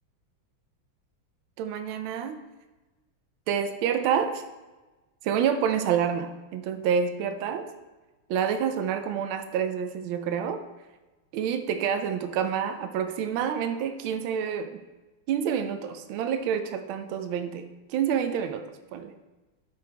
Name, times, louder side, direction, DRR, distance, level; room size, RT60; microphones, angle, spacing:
voice 1, 1.6-2.4 3.5-4.4 5.2-7.7 8.3-10.6 11.3-14.8 15.3-18.6 18.9-19.1, right 8 dB, 75° right, 8 dB, 1.4 m, -28 dB
11.0 x 5.1 x 3.4 m, 1.2 s
omnidirectional pair, 2.3 m